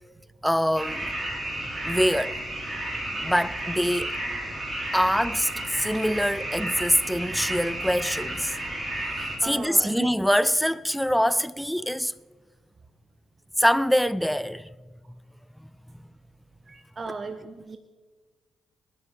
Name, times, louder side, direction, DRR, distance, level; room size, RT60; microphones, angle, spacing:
voice 1, 0.4-1.1 1.8-2.4 3.2-4.2 4.9-8.6 9.2-12.1 13.6-14.7, equal, ahead, 0.3 m, -24 dB
sound 1, 0.8-9.4, right 1 dB, 20° right, 4.8 m, -32 dB
voice 2, 9.4-10.1 16.7-17.8, right 4 dB, 35° right, 0.8 m, -35 dB
28.0 x 10.0 x 3.7 m
cardioid pair, 90°, 0 cm